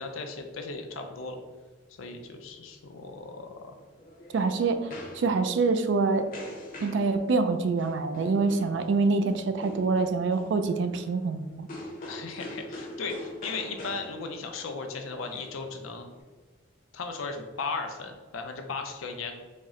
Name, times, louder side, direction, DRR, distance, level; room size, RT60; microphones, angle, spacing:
voice 1, 0.0-1.4 2.0-3.8 12.1-16.1 16.9-19.3, left 4 dB, 85° left, 4 dB, 0.5 m, -36 dB
sound 1, 3.7-16.2, left 1 dB, 40° left, 0.7 m, -44 dB
voice 2, 4.3-6.3 6.8-11.7, right 4 dB, 60° right, 8 dB, 0.3 m, -26 dB
4.2 x 2.1 x 3.6 m, 1.3 s
head